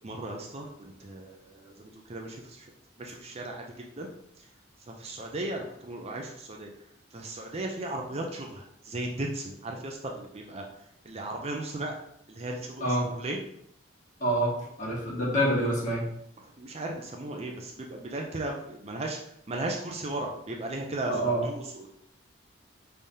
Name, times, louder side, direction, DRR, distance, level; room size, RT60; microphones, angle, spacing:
voice 1, 0.0-2.7 3.0-3.6 4.0-4.1 4.9-6.7 7.1-10.6 11.0-11.9 12.3-13.4 16.4-19.2 19.5-21.9, right 2 dB, 30° right, 1 dB, 0.5 m, -36 dB
voice 2, 14.2-14.5 14.8-16.0 21.1-21.5, right 1 dB, 40° left, -6 dB, 1.8 m, -26 dB
5.4 x 3.3 x 2.8 m, 0.71 s
head